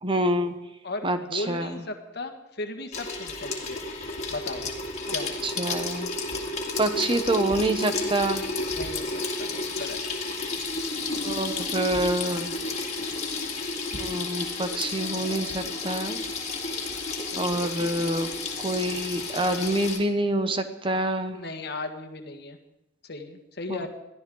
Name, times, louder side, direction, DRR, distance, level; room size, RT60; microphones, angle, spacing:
voice 1, 0.0-0.5 1.0-1.7 5.4-6.1 6.8-8.4 11.2-12.5 13.9-16.2 17.4-18.3 18.6-21.4 23.7-23.8, right 1 dB, 25° right, 8 dB, 1.0 m, -27 dB
voice 2, 0.8-3.8 4.3-4.6 5.1-5.5 8.7-9.1 9.4-10.0 17.3-18.1 21.3-22.6 23.0-23.9, left 2 dB, 60° left, 5 dB, 1.7 m, -36 dB
Water tap faucet / Sink (filling or washing), 2.9-20.0, left 3 dB, 35° left, 2.4 m, -31 dB
22.0 x 14.0 x 3.9 m, 0.91 s
head